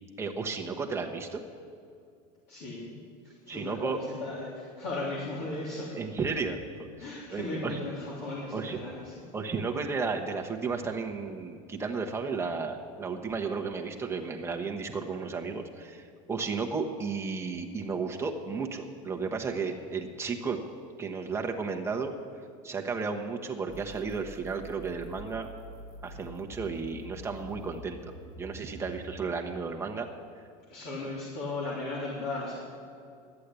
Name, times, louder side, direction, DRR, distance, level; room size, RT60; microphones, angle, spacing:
voice 1, 0.2-1.4 3.5-4.0 5.9-7.8 8.5-8.8 9.3-20.6 21.0-22.1 22.6-25.5 26.0-30.1, right 4 dB, 15° right, 2 dB, 1.1 m, -33 dB
voice 2, 2.5-3.0 3.2-6.0 7.0-9.2 30.7-32.6, left 2 dB, 65° left, -6 dB, 3.0 m, -36 dB
sound 1, 23.7-29.2, equal, 25° left, 3.0 m, -47 dB
12.0 x 8.4 x 8.2 m, 2.4 s
supercardioid pair, 135°, 17 cm